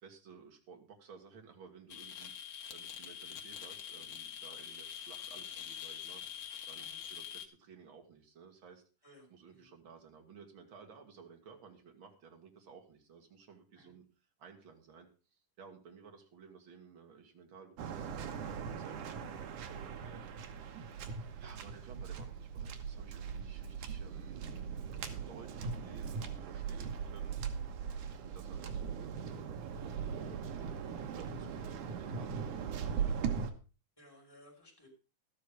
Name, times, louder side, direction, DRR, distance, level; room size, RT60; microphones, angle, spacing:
voice 1, 0.0-2.3 2.7-8.8 9.3-14.0 14.4-20.3 21.4-27.4 28.1-33.4, right 6 dB, 45° right, 4 dB, 2.6 m, -56 dB
sound 1, 1.9-7.5, left 9 dB, 60° left, 2.2 m, -45 dB
voice 2, 9.0-9.7 13.8-13.9 27.8-28.0 34.0-34.9, left 1 dB, 5° left, -3 dB, 5.3 m, -60 dB
Waves surf, 17.8-33.5, right 6 dB, 75° right, 2.7 m, -40 dB
13.0 x 10.0 x 4.9 m, 0.33 s
omnidirectional pair, 3.6 m